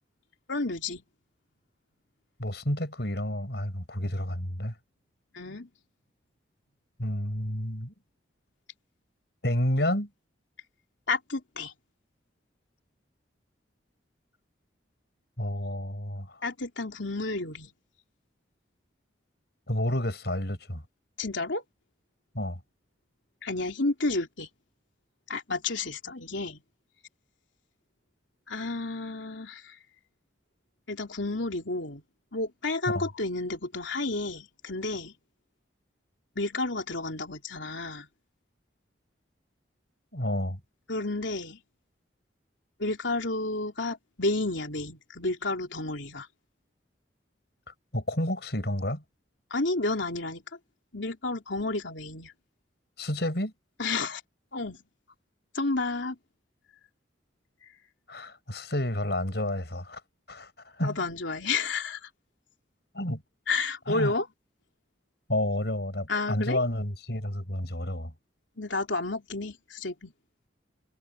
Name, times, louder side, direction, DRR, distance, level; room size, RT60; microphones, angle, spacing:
voice 1, 0.5-1.0 5.3-5.7 11.1-11.7 16.4-17.7 21.2-21.6 23.4-24.5 25.3-26.6 28.5-29.8 30.9-32.0 32.3-35.1 36.4-38.1 40.9-41.6 42.8-46.3 49.5-50.4 50.9-52.3 53.8-54.2 54.5-54.8 55.5-56.2 60.8-62.1 63.5-64.3 66.1-66.6 68.6-70.1, left 3 dB, 90° left, 3.3 m, -31 dB
voice 2, 2.4-4.7 7.0-7.9 9.4-10.1 15.4-16.4 19.7-20.8 22.3-22.6 32.9-33.0 40.1-40.6 47.9-49.0 53.0-53.5 58.1-60.0 60.3-61.0 62.9-63.2 63.9-64.1 65.3-68.1, left 1 dB, 60° left, 6.2 m, -30 dB
head